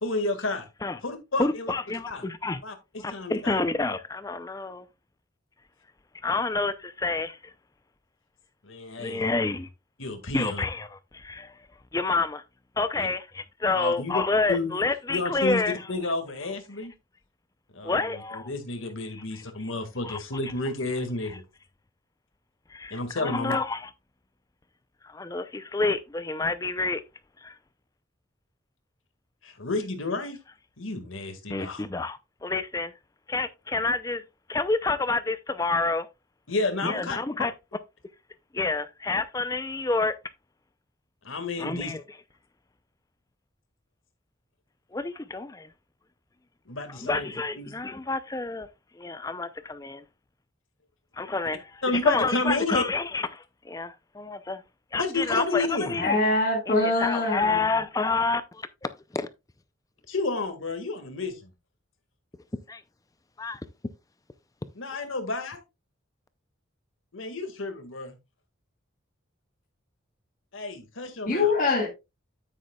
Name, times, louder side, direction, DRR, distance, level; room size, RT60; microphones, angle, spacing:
voice 1, 0.0-0.7 1.0-1.7 2.1-2.2 2.6-3.6 8.6-9.3 10.0-10.6 13.0-13.1 13.7-14.2 14.5-14.7 15.1-15.6 15.9-16.9 17.7-21.4 22.9-23.6 29.4-30.4 30.8-31.8 36.5-37.2 41.2-41.9 46.7-47.3 47.6-47.8 51.8-52.8 55.0-56.0 60.1-61.5 64.8-65.6 67.1-68.2 70.5-71.5, left 2 dB, 80° left, 1.8 m, -31 dB
voice 2, 1.4-2.6 3.0-4.9 6.2-7.4 9.0-9.7 10.3-11.5 11.9-12.4 12.8-15.8 17.8-18.5 19.1-19.4 20.0-20.2 22.7-23.9 25.0-27.0 27.4-27.6 31.5-32.9 33.3-34.2 34.5-36.1 36.8-37.5 38.5-40.1 41.6-42.0 44.9-45.7 46.9-48.7 49.0-50.0 51.2-54.6 54.9-56.2 56.7-59.3 62.7-62.8 63.4-63.6, left 3 dB, 15° left, 0.4 m, -29 dB
voice 3, 56.0-57.6 71.3-71.9, left 2 dB, 40° left, 2.0 m, -24 dB
9.5 x 8.4 x 2.3 m
head